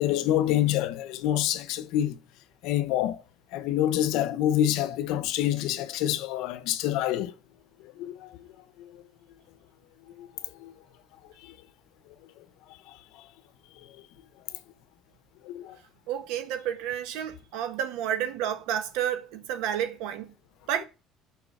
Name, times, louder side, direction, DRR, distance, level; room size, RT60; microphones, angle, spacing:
voice 1, 0.0-2.2 2.6-3.2 3.5-7.3 7.8-8.4 8.8-9.0 10.2-10.3 10.6-10.7 11.4-11.5 12.9-13.3 15.4-15.8, left 12 dB, 75° left, 0.9 m, -27 dB
voice 2, 16.1-20.3 20.7-20.8, right 10 dB, 85° right, 1.4 m, -30 dB
6.8 x 5.6 x 6.7 m
cardioid pair, 155°, 0 cm